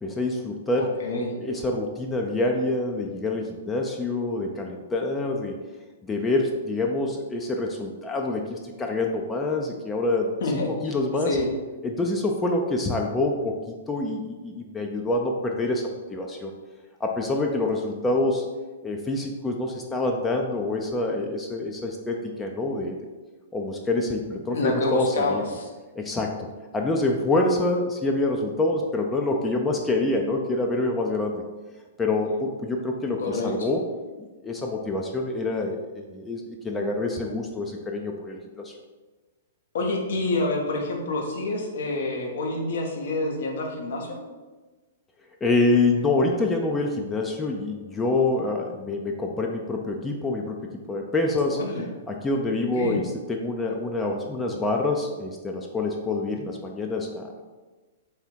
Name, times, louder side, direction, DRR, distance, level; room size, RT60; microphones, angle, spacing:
voice 1, 0.0-0.9 1.4-5.6 6.0-11.4 11.8-16.5 17.0-18.4 18.8-22.9 23.5-25.4 26.0-26.5 26.7-31.4 32.0-33.8 34.2-38.7 45.4-51.6 52.1-57.4, left 2 dB, 15° left, 1 dB, 0.5 m, -26 dB
voice 2, 0.8-1.3 10.4-10.7 11.2-11.5 24.5-25.7 33.2-33.7 39.7-44.2 51.5-51.9 52.8-53.0, left 2 dB, 60° left, 1 dB, 0.9 m, -27 dB
3.5 x 3.3 x 4.4 m, 1.3 s
figure-of-eight pair, 110°, 0 cm